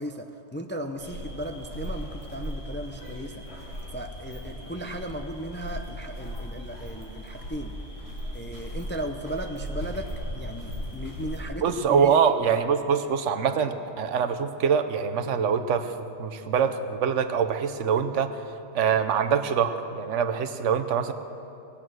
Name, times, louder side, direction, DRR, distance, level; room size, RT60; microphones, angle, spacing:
voice 1, 0.0-3.6 3.9-7.8 8.3-10.1 10.3-12.2 12.5-12.6, right 1 dB, 15° left, 5 dB, 0.4 m, -36 dB
sound 1, 1.0-11.4, equal, 60° left, 2.6 m, -37 dB
voice 2, 11.6-15.9 16.2-18.3 18.7-21.1, right 7 dB, 85° right, 9 dB, 1.1 m, -24 dB
18.5 x 8.6 x 6.2 m, 2.8 s
omnidirectional pair, 1.2 m